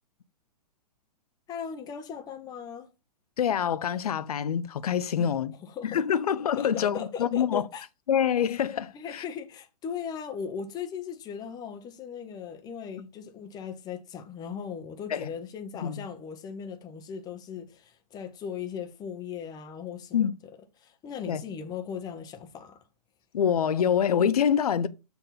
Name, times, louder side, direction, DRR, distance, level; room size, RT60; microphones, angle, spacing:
voice 1, 1.5-2.9 5.2-5.4 5.6-6.0 6.6-7.8 8.9-20.3 20.8-22.8, left 7 dB, 20° left, 0.8 m, -38 dB
voice 2, 3.4-5.5 5.8-7.7 8.1-9.2 15.1-15.3 15.8-16.0 20.1-20.3 21.3-21.4 23.3-24.9, left 8 dB, 65° left, 0.6 m, -26 dB
7.0 x 2.9 x 5.6 m
figure-of-eight pair, 120°, 21 cm